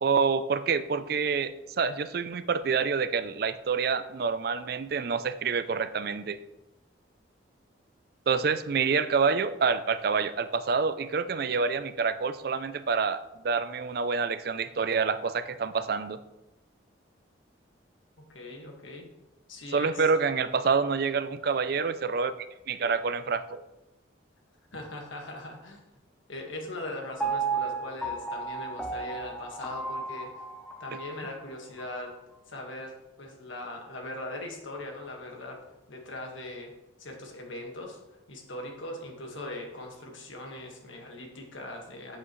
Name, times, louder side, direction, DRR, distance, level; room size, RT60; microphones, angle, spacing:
voice 1, 0.0-6.4 8.3-16.2 19.7-22.3 22.7-23.6, right 5 dB, 50° right, 13 dB, 0.4 m, -27 dB
voice 2, 18.3-19.1 19.5-20.1 24.7-25.8 26.3-30.3 30.8-32.1 32.5-35.6 35.9-36.7 37.0-38.0 38.3-42.2, left 1 dB, 85° left, 1 dB, 1.7 m, -40 dB
Piano, 27.2-31.3 31.8-31.9, right 4 dB, 5° left, 0.7 m, -33 dB
8.4 x 7.6 x 3.1 m, 0.97 s
head